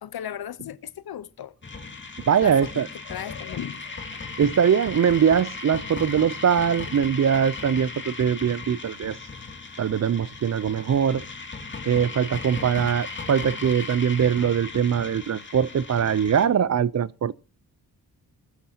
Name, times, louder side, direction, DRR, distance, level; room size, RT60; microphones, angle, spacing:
voice 1, 0.0-1.6 2.4-4.2, left 10 dB, 75° left, 0.9 m, -37 dB
sound 1, 1.6-16.5, left 4 dB, 30° left, 2.5 m, -37 dB
voice 2, 2.3-2.9 4.4-9.2 9.8-11.2 11.9-17.3, right 8 dB, 45° right, 0.6 m, -22 dB
20.5 x 12.5 x 2.9 m
wide cardioid pair, 100°, 38 cm